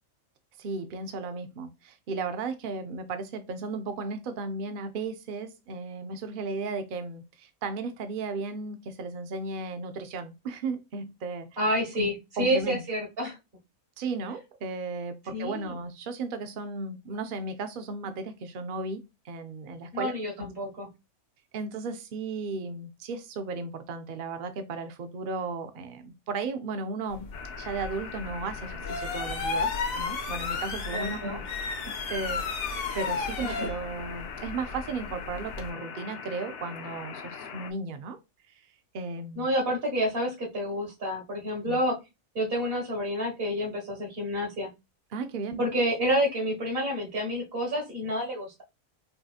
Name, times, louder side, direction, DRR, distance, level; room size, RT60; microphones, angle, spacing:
voice 1, 0.6-11.5 12.0-12.1 12.4-12.8 14.0-20.5 21.5-38.2 38.9-39.5 41.6-41.8 45.1-45.6, right 4 dB, 65° right, 0.5 m, -35 dB
voice 2, 11.6-13.4 15.3-15.8 19.9-20.9 30.9-31.4 33.4-33.7 39.3-42.0 42.3-44.7 45.6-48.6, equal, 45° right, 1.6 m, -29 dB
sound 1, 27.1-35.7, left 4 dB, 85° left, 1.3 m, -34 dB
sound 2, 27.3-37.7, left 6 dB, 60° left, 0.7 m, -42 dB
5.4 x 2.7 x 2.4 m
omnidirectional pair, 1.4 m